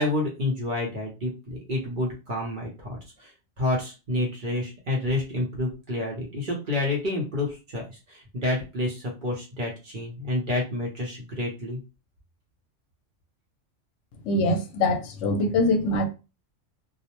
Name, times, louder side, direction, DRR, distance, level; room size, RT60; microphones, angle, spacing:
voice 1, 0.0-3.3 3.6-11.8, left 1 dB, 50° right, 0.7 m, -29 dB
voice 2, 14.3-16.1, left 2 dB, 70° left, 0.8 m, -23 dB
2.3 x 2.0 x 2.8 m
omnidirectional pair, 1.3 m